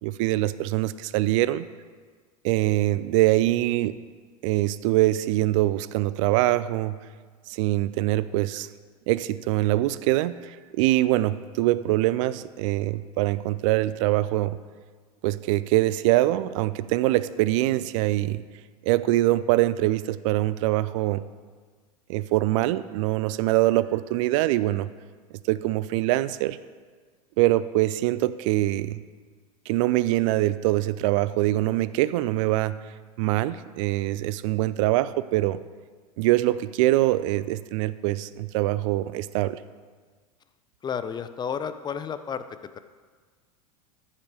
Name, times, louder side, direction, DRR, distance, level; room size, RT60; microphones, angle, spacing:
voice 1, 0.0-1.7 2.4-4.0 4.4-7.0 7.5-8.7 9.1-14.6 15.2-18.4 18.8-21.2 22.1-24.9 25.5-26.6 27.4-29.0 29.7-32.8 33.2-35.6 36.2-39.6, right 16 dB, 55° right, 16 dB, 0.4 m, -23 dB
voice 2, 40.8-42.4, left 7 dB, 20° left, 11 dB, 0.6 m, -31 dB
14.5 x 5.7 x 4.7 m, 1.5 s
hypercardioid pair, 85°, 20 cm